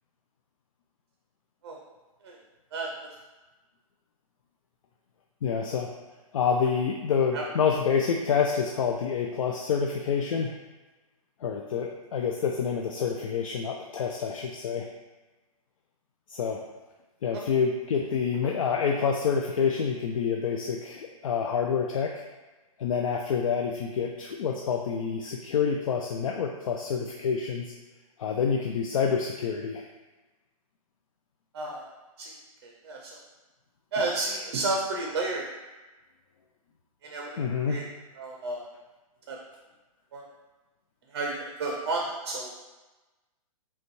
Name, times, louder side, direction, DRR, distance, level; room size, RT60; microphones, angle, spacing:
voice 1, 5.4-5.9 6.3-10.6 11.4-14.9 16.3-16.6 17.2-22.2 22.8-27.7 28.2-29.9 37.4-37.9, left 6 dB, 65° left, 2 dB, 0.4 m, -27 dB
voice 2, 31.5-31.9 32.2-32.3 32.6-33.2 33.9-35.5 37.0-37.3 37.6-37.9 38.2-38.6 39.3-39.4 40.1-40.2 41.1-42.5, right 2 dB, 40° right, -1 dB, 0.5 m, -31 dB
5.3 x 2.2 x 3.0 m, 1.2 s
hypercardioid pair, 170°, 19 cm